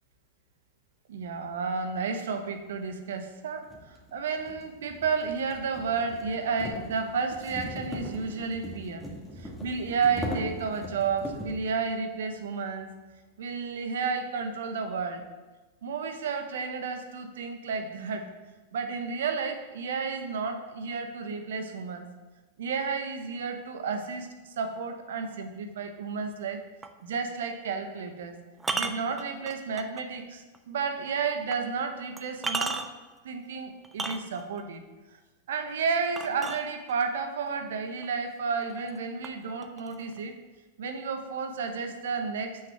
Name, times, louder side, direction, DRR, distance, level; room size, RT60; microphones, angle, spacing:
voice 1, 1.1-9.1 9.4-12.9 13.4-15.2 15.8-18.3 18.7-22.0 22.6-26.6 27.0-28.4 28.7-32.8 33.2-34.8 35.5-40.4 40.8-42.6, right 5 dB, 70° right, 7 dB, 1.0 m, -32 dB
sound 1, 2.8-2.9 3.6-11.7, left 1 dB, 5° left, 1.9 m, -39 dB
sound 2, 26.8-27.0 28.6-30.0 30.5-30.6 31.5-31.6 32.2-33.1 33.8-34.6 36.2-37.1 38.0-38.1 38.5-39.0 39.2-40.2, right 3 dB, 15° right, 0.6 m, -34 dB
6.0 x 5.8 x 5.8 m, 1.2 s
hypercardioid pair, 100°, 0 cm